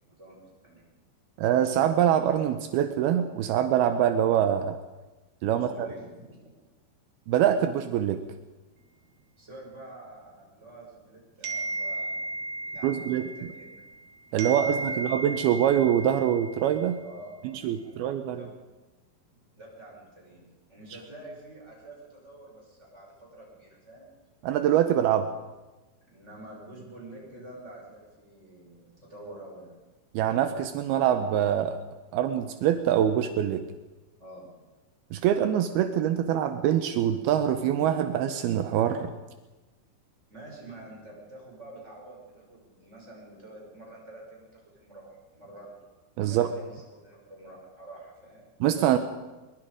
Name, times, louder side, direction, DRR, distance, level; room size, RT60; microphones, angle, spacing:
voice 1, 0.2-0.8 5.5-6.3 9.4-13.9 14.3-15.1 17.0-18.5 18.9-19.0 19.3-24.1 26.1-29.8 34.2-34.5 40.3-45.8 46.3-48.5, right 1 dB, 15° right, -3 dB, 6.5 m, -47 dB
voice 2, 1.4-4.8 5.4-5.9 7.3-8.2 12.8-13.5 14.3-17.0 17.5-18.5 24.4-25.3 30.1-31.8 32.1-33.6 35.1-39.1 46.2-46.5 48.6-49.0, right 10 dB, 80° right, 8 dB, 2.2 m, -24 dB
sound 1, 11.4-14.0 14.4-16.9, right 2 dB, 65° right, 1.8 m, -35 dB
23.0 x 22.5 x 5.1 m, 1.1 s
omnidirectional pair, 5.6 m